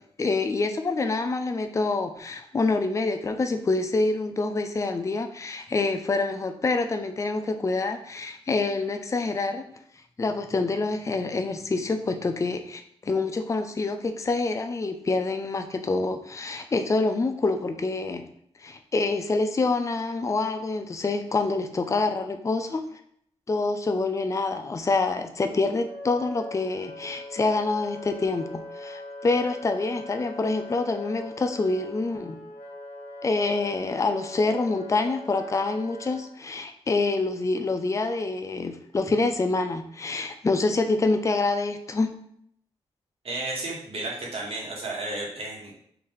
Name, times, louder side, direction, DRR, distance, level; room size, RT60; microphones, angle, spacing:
voice 1, 0.2-9.6 10.2-18.3 18.6-22.8 23.5-32.4 33.2-42.1, left 3 dB, 25° left, 7 dB, 0.4 m, -26 dB
Wind instrument woodwind instrument, 25.4-36.2, left 2 dB, 80° left, 0.9 m, -41 dB
voice 2, 43.2-45.7, right 2 dB, 60° right, -3 dB, 1.4 m, -33 dB
3.3 x 2.6 x 3.9 m, 0.68 s
cardioid pair, 65°, 11 cm